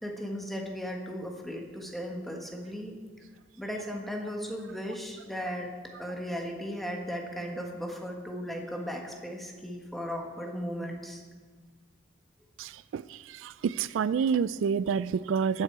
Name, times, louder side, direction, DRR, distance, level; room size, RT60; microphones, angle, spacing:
voice 1, 0.0-2.9 3.6-5.7 6.0-11.2, equal, ahead, 1 dB, 1.5 m, -36 dB
voice 2, 12.6-13.0 13.4-15.6, right 6 dB, 85° right, 18 dB, 0.3 m, -28 dB
14.0 x 9.7 x 4.7 m, 1.5 s
head